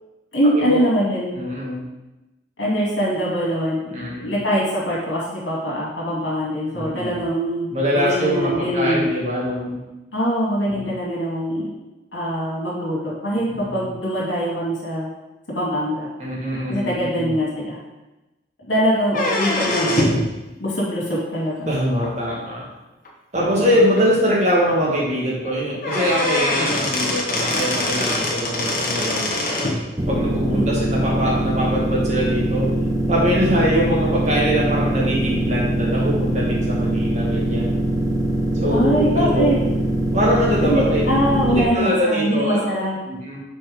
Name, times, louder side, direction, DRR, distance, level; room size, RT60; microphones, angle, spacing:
voice 1, 0.3-1.3 2.6-3.8 4.2-7.7 7.9-9.1 10.1-11.7 12.1-15.1 15.5-16.1 16.7-17.8 18.7-20.2 20.6-21.7 23.4-23.6 30.5-30.9 38.7-39.6 40.6-43.0, equal, 80° left, -5 dB, 2.6 m, -23 dB
voice 2, 1.3-1.9 3.9-4.3 6.7-7.2 7.7-9.8 10.7-10.9 13.5-13.9 16.2-17.3 21.7-22.6 23.3-29.7 30.1-32.7 33.1-37.9 38.5-39.5 40.1-41.0 41.5-42.8 43.0-43.4, equal, 35° right, -4 dB, 1.9 m, -23 dB
sound 1, 19.1-20.3 22.0-22.1 23.1-23.2 23.6-23.7 24.0-24.1 25.4-25.5 25.8-29.8, left 1 dB, 45° left, 1.2 m, -23 dB
sound 2, 30.0-41.6, right 1 dB, 20° right, 0.7 m, -22 dB
6.2 x 4.4 x 5.3 m, 1.0 s
head